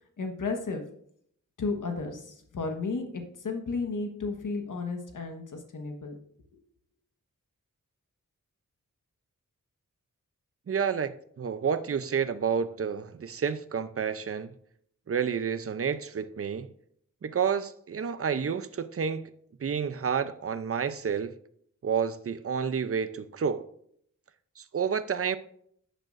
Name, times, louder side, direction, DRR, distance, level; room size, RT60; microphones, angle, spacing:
voice 1, 0.2-0.8 1.6-6.2 6.5-6.6, left 4 dB, 75° left, 1.4 m, -33 dB
voice 2, 10.7-14.5 15.1-16.7 17.2-19.3 19.6-21.3 21.8-23.7 24.6-25.4, right 7 dB, 45° right, 0.6 m, -30 dB
10.5 x 9.0 x 2.6 m
wide cardioid pair, 90°, 32 cm